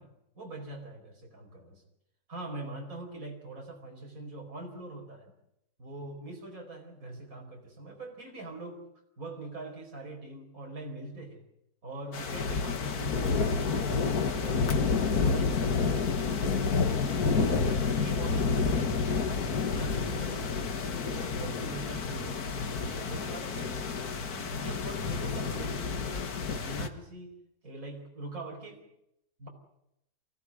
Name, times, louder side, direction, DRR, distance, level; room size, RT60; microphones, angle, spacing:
voice 1, 0.0-1.8 2.3-5.3 5.8-8.8 9.2-11.4 11.8-14.7 15.2-16.0 16.7-19.3 19.7-20.5 20.8-23.8 24.3-27.3 27.6-28.8 29.4-29.5, right 2 dB, 60° right, 1 dB, 5.3 m, -43 dB
sound 1, 12.1-26.9, left 5 dB, 75° left, 2.0 m, -29 dB
24.0 x 16.0 x 9.8 m, 0.82 s
omnidirectional pair, 1.6 m